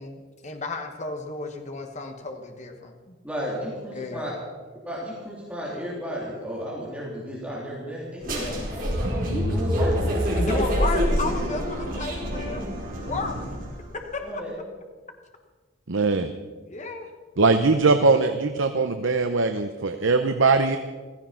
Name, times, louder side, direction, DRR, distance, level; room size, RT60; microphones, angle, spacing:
voice 1, 0.0-3.2 3.9-4.3 8.2-8.7 10.4-12.7 13.0-13.5 14.1-14.4 16.6-17.1, left 3 dB, 35° left, 4 dB, 1.3 m, -33 dB
voice 2, 3.2-4.3 4.8-8.5 9.3-10.7 14.2-14.5, equal, 5° right, -6 dB, 3.4 m, -33 dB
sound 1, 8.2-13.8, equal, 45° right, 4.6 m, -26 dB
voice 3, 15.9-16.3 17.4-20.8, right 3 dB, 70° right, 7 dB, 0.8 m, -21 dB
16.0 x 15.0 x 5.8 m, 1.4 s
head